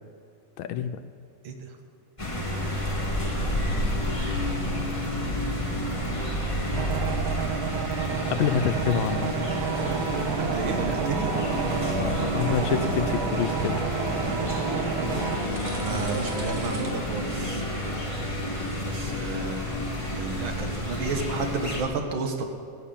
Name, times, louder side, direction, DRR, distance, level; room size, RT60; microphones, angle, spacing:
voice 1, 0.6-0.9 8.3-9.4 12.0-13.8, left 8 dB, 75° left, 11 dB, 1.3 m, -27 dB
sound 1, 2.2-21.8, equal, 15° left, 1.5 m, -30 dB
voice 2, 3.7-4.3 6.7-7.0 10.4-11.3 15.6-17.6 18.9-19.7 20.1-22.4, right 4 dB, 70° right, 4 dB, 1.9 m, -32 dB
sound 2, 6.7-15.4, right 9 dB, 85° right, 0.9 m, -31 dB
sound 3, 9.5-16.9, right 1 dB, 30° right, 1.9 m, -34 dB
15.5 x 5.8 x 8.6 m, 2.3 s
omnidirectional pair, 2.4 m